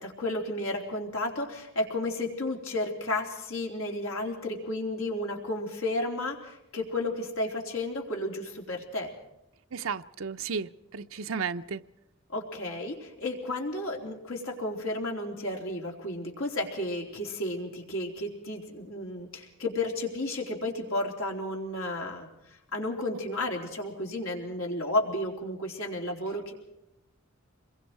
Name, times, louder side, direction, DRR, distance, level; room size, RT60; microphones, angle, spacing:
voice 1, 0.0-9.1 12.3-26.5, left 1 dB, 90° left, 1 dB, 3.8 m, -32 dB
voice 2, 9.7-11.8, right 5 dB, 80° right, 9 dB, 0.6 m, -33 dB
26.5 x 22.0 x 4.7 m, 0.87 s
head